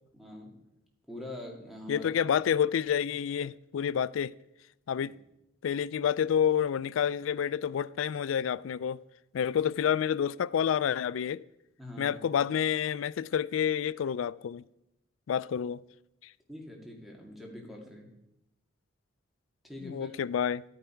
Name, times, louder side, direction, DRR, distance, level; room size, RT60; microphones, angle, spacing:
voice 1, 0.1-0.6 1.1-2.1 11.8-12.2 16.5-18.1 19.6-20.1, left 1 dB, ahead, 2.3 m, -44 dB
voice 2, 1.9-4.3 4.9-5.2 5.6-9.0 9.3-11.4 12.0-14.6 15.3-15.8 19.8-20.6, left 8 dB, 80° left, 0.3 m, -29 dB
13.0 x 9.1 x 4.5 m
head